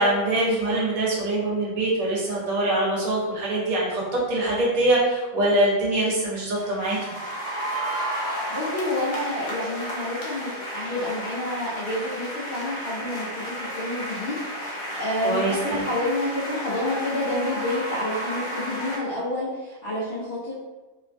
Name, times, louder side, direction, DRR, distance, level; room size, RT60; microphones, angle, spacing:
voice 1, 0.0-7.0 15.2-15.8, right 1 dB, 75° right, -4 dB, 1.2 m, -23 dB
sound 1, 6.5-19.0, right 1 dB, 75° left, 1.1 m, -32 dB
voice 2, 8.2-20.5, left 1 dB, 55° left, -7 dB, 0.7 m, -29 dB
3.0 x 2.2 x 2.5 m, 1.1 s
omnidirectional pair, 1.5 m